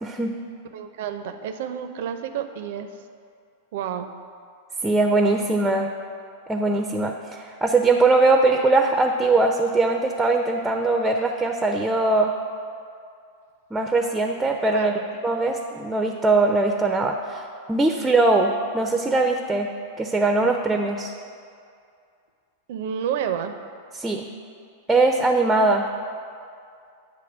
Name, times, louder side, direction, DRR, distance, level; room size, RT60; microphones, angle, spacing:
voice 1, 0.0-0.3 4.8-5.9 6.5-12.3 13.7-14.9 15.2-19.7 20.0-21.1 23.9-24.3 24.9-25.9, right 3 dB, 10° right, 3 dB, 0.4 m, -21 dB
voice 2, 0.7-2.9 3.7-4.1 14.7-15.1 22.7-23.6, right 8 dB, 65° right, 8 dB, 0.5 m, -30 dB
7.8 x 2.8 x 6.0 m, 2.3 s
hypercardioid pair, 105°, 0 cm